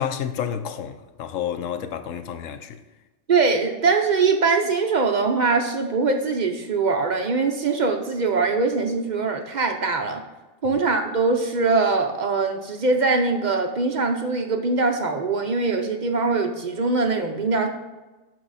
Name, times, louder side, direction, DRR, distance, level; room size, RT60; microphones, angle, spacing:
voice 1, 0.0-2.8 10.6-10.8, left 9 dB, 85° left, 1.0 m, -30 dB
voice 2, 3.3-10.2 10.6-17.7, right 4 dB, 45° right, 0.7 m, -22 dB
12.0 x 4.7 x 4.1 m
omnidirectional pair, 1.3 m